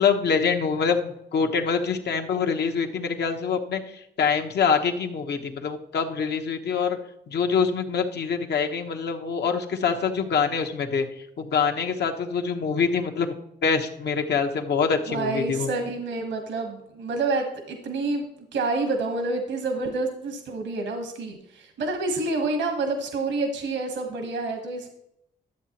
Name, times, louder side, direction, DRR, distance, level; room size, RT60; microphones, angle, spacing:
voice 1, 0.0-7.0 7.3-11.0 11.4-13.3 13.6-15.7, left 6 dB, 65° left, 4 dB, 1.1 m, -25 dB
voice 2, 15.1-18.2 18.5-24.9, right 3 dB, 80° right, 5 dB, 1.3 m, -28 dB
12.0 x 7.5 x 3.0 m, 0.80 s
cardioid pair, 65°, 19 cm